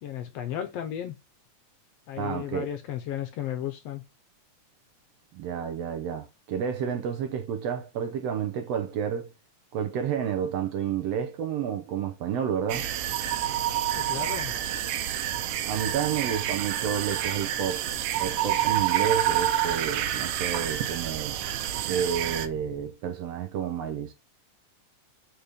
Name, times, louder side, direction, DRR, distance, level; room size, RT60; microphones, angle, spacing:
voice 1, 0.0-1.2 2.1-4.0 13.9-14.5, left 10 dB, 70° left, 1.6 m, -34 dB
voice 2, 2.2-2.7 5.3-9.3 9.7-12.9 15.7-17.8 18.2-21.4 21.8-24.1, right 8 dB, 70° right, 1.6 m, -30 dB
sound 1, 12.7-22.5, right 11 dB, 90° right, 2.3 m, -28 dB
sound 2, 17.5-22.9, left 5 dB, 20° left, 1.6 m, -54 dB
5.0 x 4.5 x 5.1 m
omnidirectional pair, 3.5 m